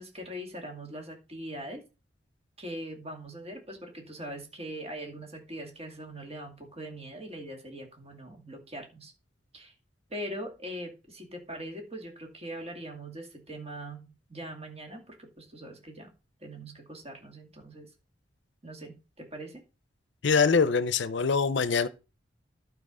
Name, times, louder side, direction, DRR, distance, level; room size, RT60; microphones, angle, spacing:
voice 1, 0.0-1.8 2.6-9.1 9.5-9.7 10.1-16.1 16.4-17.9 18.6-19.6, right 1 dB, 35° right, 2.3 m, -41 dB
voice 2, 20.2-21.9, left 5 dB, 65° left, 0.6 m, -24 dB
12.0 x 4.6 x 4.9 m
head